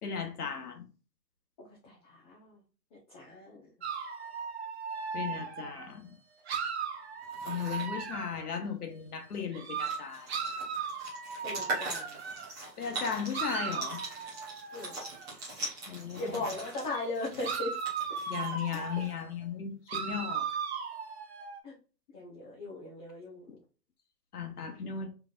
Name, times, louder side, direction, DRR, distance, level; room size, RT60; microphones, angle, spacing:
voice 1, 0.0-0.8 5.1-6.1 7.4-10.3 12.8-14.0 15.9-16.5 18.3-20.5 24.3-25.1, left 7 dB, 65° left, 1.3 m, -36 dB
voice 2, 1.6-2.6 2.9-3.7 11.4-12.2 14.7-15.0 16.2-17.7 18.7-18.8 21.6-21.7 22.1-23.4, left 2 dB, 20° left, 0.8 m, -38 dB
sound 1, 3.8-5.9 6.5-8.5 9.5-12.5 13.3-15.3 16.9-17.1 17.4-19.1 19.9-21.6, right 6 dB, 40° right, 0.7 m, -37 dB
sound 2, 7.2-7.9 9.3-9.4 9.6-19.2, right 2 dB, 10° right, 0.6 m, -42 dB
4.0 x 3.4 x 2.4 m
hypercardioid pair, 140°, 49 cm